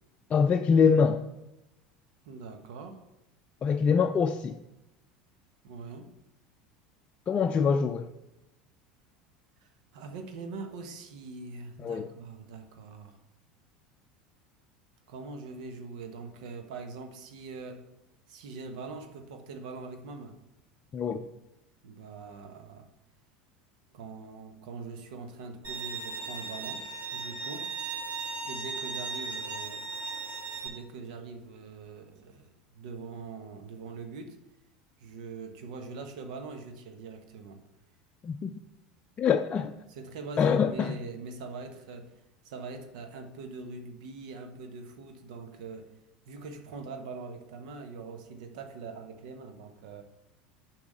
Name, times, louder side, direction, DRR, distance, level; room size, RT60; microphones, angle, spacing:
voice 1, 0.3-1.2 3.6-4.6 7.3-8.1 11.8-12.1 20.9-21.3 38.2-38.5 39.2-39.7 40.4-41.0, left 6 dB, 30° left, 5 dB, 0.5 m, -24 dB
voice 2, 2.2-3.0 5.6-6.1 9.6-13.2 15.1-17.9 18.3-20.4 21.8-22.9 23.9-26.8 27.1-27.7 28.4-29.9 30.6-34.4 35.0-37.6 39.9-42.1 42.4-45.9 46.2-50.0, right 4 dB, 70° right, 6 dB, 1.2 m, -43 dB
Bowed string instrument, 25.6-30.7, right 4 dB, 40° right, 3.0 m, -37 dB
7.1 x 4.9 x 6.7 m, 0.93 s
hypercardioid pair, 85°, 4 cm